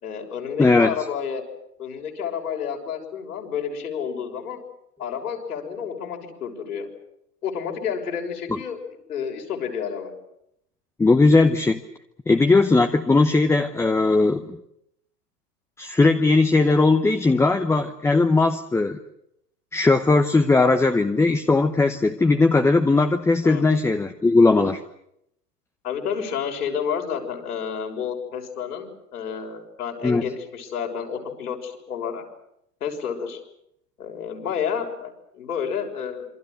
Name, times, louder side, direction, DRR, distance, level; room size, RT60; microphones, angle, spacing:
voice 1, 0.0-1.4 1.8-4.6 5.0-6.9 7.4-8.8 9.1-10.1 17.4-17.5 23.4-23.7 25.8-32.2 32.8-33.4 34.0-36.3, left 7 dB, 70° left, 2 dB, 6.6 m, -30 dB
voice 2, 0.6-0.9 8.5-8.6 11.0-11.8 12.3-14.6 15.8-19.0 19.7-24.8 30.0-30.2, left 3 dB, 5° left, 7 dB, 0.9 m, -18 dB
27.5 x 24.5 x 6.5 m, 0.76 s
figure-of-eight pair, 105°, 47 cm